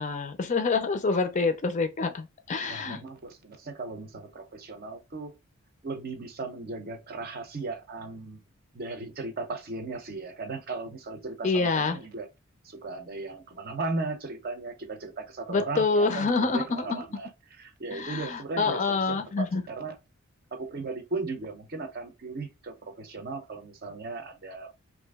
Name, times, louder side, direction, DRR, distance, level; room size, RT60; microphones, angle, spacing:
voice 1, 0.0-3.0 11.4-12.0 15.5-17.1 17.9-19.6, left 4 dB, 35° left, 0.4 m, -27 dB
voice 2, 2.6-5.3 5.8-8.4 8.7-12.3 12.6-17.3 17.6-20.0 20.5-24.7, right 3 dB, 45° right, 0.6 m, -37 dB
2.9 x 2.5 x 3.4 m
head